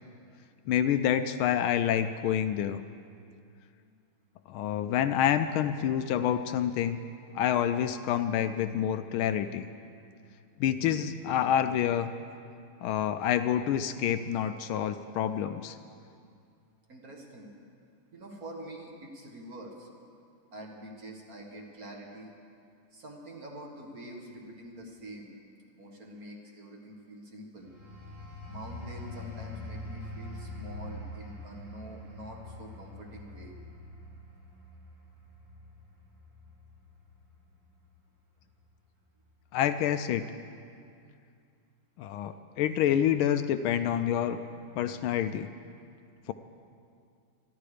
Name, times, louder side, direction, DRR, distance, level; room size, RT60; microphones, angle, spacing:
voice 1, 0.7-2.8 4.5-7.0 7.3-9.7 10.6-12.1 12.8-15.8 39.5-40.3 42.0-44.4 44.7-45.5, left 10 dB, 75° left, 10 dB, 1.3 m, -27 dB
voice 2, 16.9-17.5 18.1-19.9 20.5-22.3 22.9-25.3 25.7-27.7 28.5-33.5, right 1 dB, 45° right, 0 dB, 2.1 m, -45 dB
sound 1, 27.6-37.9 38.3-38.6, left 1 dB, 85° right, 4.0 m, -44 dB
25.5 x 11.0 x 5.0 m, 2.4 s
omnidirectional pair, 2.4 m